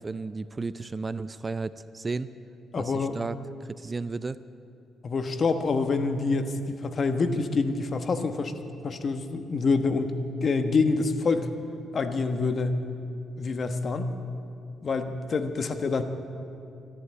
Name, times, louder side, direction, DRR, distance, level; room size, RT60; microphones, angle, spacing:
voice 1, 0.0-2.3 2.8-3.4 3.6-4.4, right 3 dB, 25° right, 15 dB, 0.4 m, -33 dB
voice 2, 2.7-3.2 5.0-8.5 8.8-11.5 11.9-12.8 13.4-14.1 14.8-16.0, left 4 dB, 45° left, 8 dB, 1.1 m, -26 dB
13.5 x 11.5 x 8.2 m, 2.6 s
cardioid pair, 90°, 0 cm